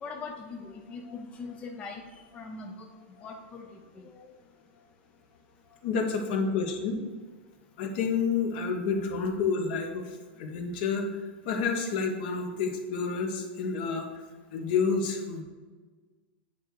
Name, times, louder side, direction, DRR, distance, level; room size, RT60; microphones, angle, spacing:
voice 1, 0.0-2.9 3.2-4.4 6.5-6.6, left 4 dB, 20° left, 2 dB, 0.5 m, -42 dB
voice 2, 5.8-7.0 7.8-11.1 11.4-14.1 14.5-15.4, left 5 dB, 55° left, 3 dB, 1.1 m, -29 dB
8.7 x 3.4 x 4.7 m, 1.4 s
supercardioid pair, 140°, 6 cm